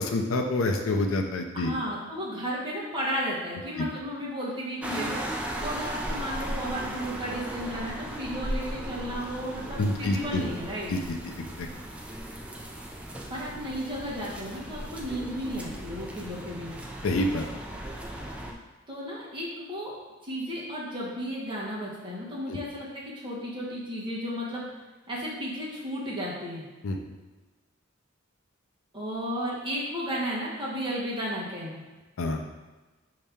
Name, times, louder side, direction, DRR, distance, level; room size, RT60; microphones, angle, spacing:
voice 1, 0.0-1.7 3.8-3.9 9.8-10.5 10.9-11.7 17.0-17.4 22.5-22.6 26.8-27.0 32.2-32.4, left 2 dB, 75° left, 4 dB, 0.5 m, -27 dB
voice 2, 1.5-10.9 13.3-16.8 18.9-19.9 20.2-24.7 25.1-26.6 28.9-31.8, equal, 25° right, -6 dB, 1.2 m, -34 dB
sound 1, 4.8-18.5, right 1 dB, 5° right, 0.4 m, -37 dB
5.3 x 2.8 x 3.5 m, 1.2 s
head